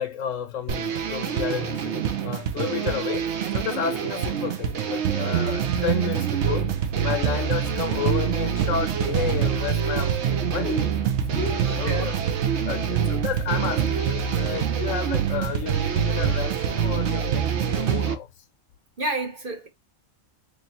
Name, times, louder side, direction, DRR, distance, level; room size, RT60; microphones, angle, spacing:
voice 1, 0.0-3.3 3.5-6.7 7.0-18.3, left 9 dB, 70° left, 0.9 m, -32 dB
sound 1, 0.7-18.1, right 8 dB, 60° right, 0.9 m, -25 dB
voice 2, 11.6-12.1 19.0-19.7, right 2 dB, 40° right, 1.2 m, -30 dB
3.1 x 2.7 x 4.1 m
omnidirectional pair, 1.5 m